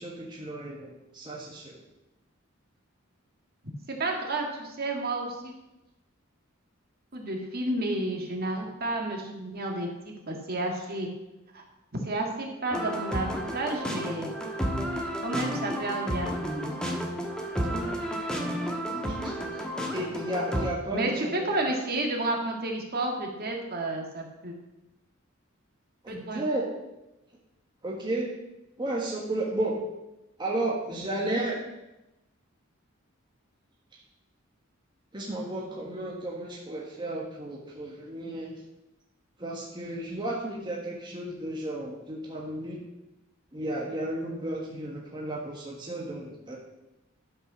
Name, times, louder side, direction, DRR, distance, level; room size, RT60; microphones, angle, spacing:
voice 1, 0.0-1.8 17.6-18.0 18.3-19.6 19.9-21.5 26.0-26.7 27.8-28.3 28.8-29.7 30.4-31.6 33.9-34.0 35.1-38.5 39.4-42.8 43.5-46.6, right 1 dB, 20° right, -3 dB, 1.4 m, -33 dB
voice 2, 3.9-5.5 7.1-11.1 11.5-11.6 12.0-14.3 15.2-16.7 20.9-24.5 26.1-26.4, right 2 dB, 50° right, 1 dB, 2.0 m, -31 dB
sound 1, 12.7-20.7, equal, 5° left, 1.4 m, -32 dB
11.5 x 5.5 x 6.3 m, 0.96 s
head